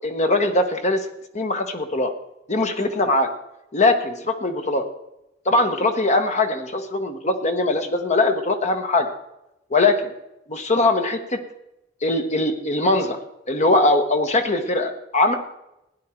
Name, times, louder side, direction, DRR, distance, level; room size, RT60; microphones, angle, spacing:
voice 1, 0.0-1.0 1.3-2.1 2.5-3.3 3.7-4.8 5.5-9.1 9.7-10.1 10.5-11.4 12.0-13.2 13.5-15.3, left 2 dB, 40° left, 6 dB, 1.1 m, -21 dB
16.5 x 10.0 x 4.4 m, 0.88 s
head